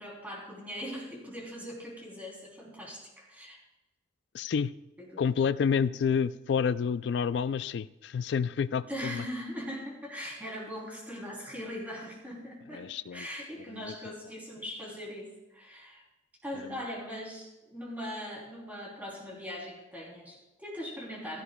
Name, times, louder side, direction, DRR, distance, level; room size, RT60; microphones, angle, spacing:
voice 1, 0.0-3.6 5.0-5.2 8.9-12.8 13.1-16.0 16.4-21.4, equal, 10° right, -3 dB, 3.1 m, -40 dB
voice 2, 4.3-4.7 5.2-9.2 12.7-13.3 13.7-13.9 16.5-16.8, left 6 dB, 65° left, 16 dB, 0.3 m, -29 dB
16.5 x 13.5 x 2.2 m, 0.99 s
head